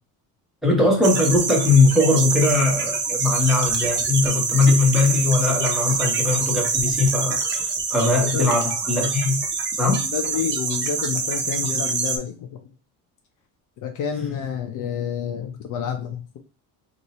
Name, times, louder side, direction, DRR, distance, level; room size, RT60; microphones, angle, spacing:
voice 1, 0.6-9.4 9.8-10.0, left 3 dB, ahead, 1.2 m, -20 dB
sound 1, 1.0-12.2, right 4 dB, 30° right, 0.7 m, -25 dB
voice 2, 9.9-12.5 13.8-16.4, left 7 dB, 55° left, 0.7 m, -29 dB
2.7 x 2.6 x 4.2 m
cardioid pair, 135°, 38 cm